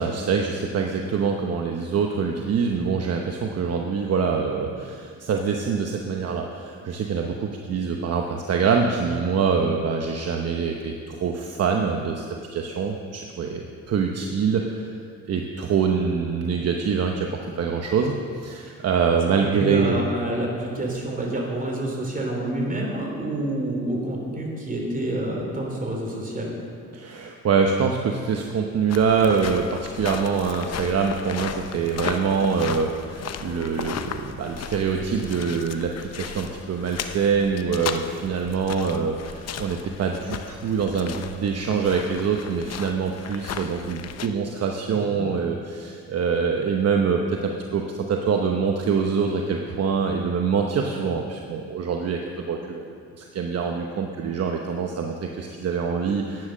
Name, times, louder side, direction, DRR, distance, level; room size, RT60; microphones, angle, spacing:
voice 1, 0.0-12.2 12.5-14.9 15.3-20.0 26.9-52.9 53.2-56.5, right 5 dB, 55° right, 2 dB, 1.0 m, -25 dB
voice 2, 19.4-26.5 44.9-45.2, right 1 dB, 25° right, 0 dB, 3.2 m, -28 dB
sound 1, 28.9-44.3, left 8 dB, 55° left, 0.8 m, -36 dB
10.5 x 9.7 x 6.3 m, 2.2 s
cardioid pair, 90°, 30 cm